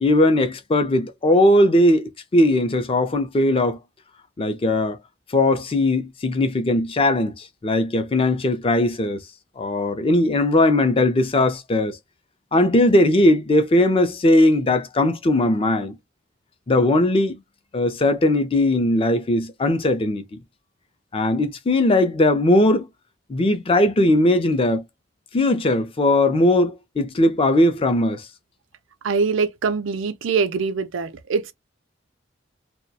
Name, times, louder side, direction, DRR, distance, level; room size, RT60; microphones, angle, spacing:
voice 1, 0.0-3.8 4.4-5.0 5.3-9.2 9.6-12.0 12.5-16.0 16.7-17.4 17.7-20.2 21.1-22.9 23.3-24.8 25.3-28.3, left 1 dB, 30° left, 0.4 m, -19 dB
voice 2, 29.0-31.5, right 5 dB, 80° right, 0.4 m, -23 dB
2.2 x 2.1 x 2.6 m
head